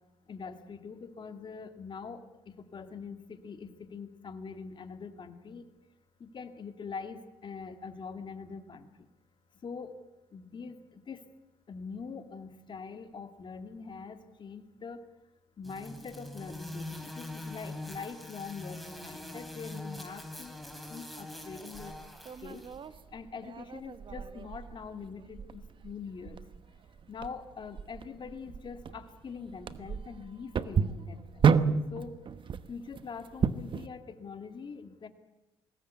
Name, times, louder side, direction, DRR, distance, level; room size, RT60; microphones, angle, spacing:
voice 1, 0.3-5.7 6.2-9.1 9.5-9.9 10.3-11.2 11.7-15.0 15.6-20.6 20.9-22.0 22.4-22.6 23.1-26.4 27.1-31.5 31.9-32.1 32.7-35.1, left 5 dB, 45° left, 7 dB, 2.5 m, -43 dB
sound 1, 15.6-22.8, left 1 dB, ahead, 3.9 m, -43 dB
sound 2, 21.7-33.9, right 6 dB, 50° right, 1.1 m, -32 dB
22.0 x 18.0 x 8.2 m, 0.95 s
supercardioid pair, 65°, 11 cm